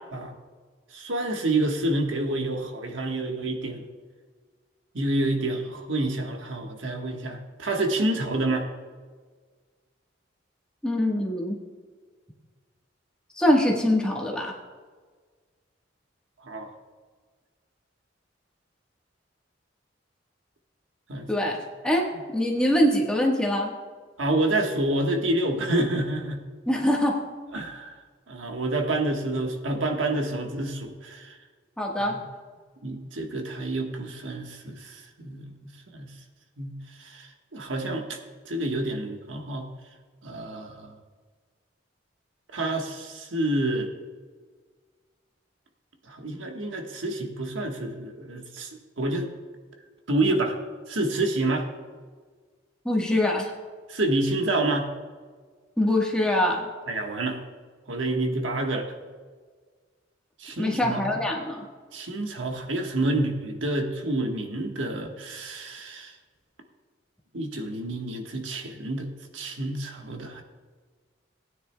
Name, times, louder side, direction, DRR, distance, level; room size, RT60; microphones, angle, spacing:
voice 1, 0.9-3.9 4.9-8.7 16.4-16.7 21.1-21.3 24.2-26.4 27.5-27.9 28.3-31.4 32.1-32.2 32.8-36.1 36.6-38.2 38.4-39.7 40.2-41.0 42.5-43.9 46.1-49.3 50.1-50.6 50.9-51.7 53.9-54.9 56.9-57.4 57.9-58.9 60.4-61.2 61.9-66.1 67.3-70.4, right 2 dB, 90° right, 3 dB, 1.3 m, -28 dB
voice 2, 10.8-11.6 13.4-14.5 21.3-23.7 26.7-27.2 31.8-32.1 52.8-53.5 55.8-56.7 60.6-61.6, left 1 dB, 5° left, -1 dB, 1.3 m, -24 dB
18.0 x 9.5 x 2.2 m, 1.5 s
head